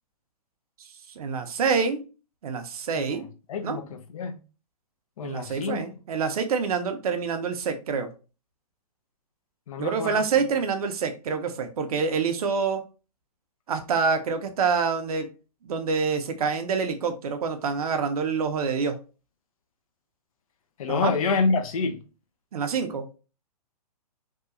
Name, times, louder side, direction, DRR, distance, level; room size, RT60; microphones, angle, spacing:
voice 1, 1.2-2.0 2.4-3.3 3.6-3.8 5.2-8.1 9.8-12.8 13.7-15.3 15.6-19.0 20.9-21.1 22.5-23.1, right 5 dB, 65° right, 0.6 m, -26 dB
voice 2, 2.9-4.4 5.2-5.8 9.7-10.3 20.8-22.0, left 4 dB, 60° left, 0.5 m, -28 dB
2.8 x 2.3 x 2.5 m
hypercardioid pair, 125°, 20 cm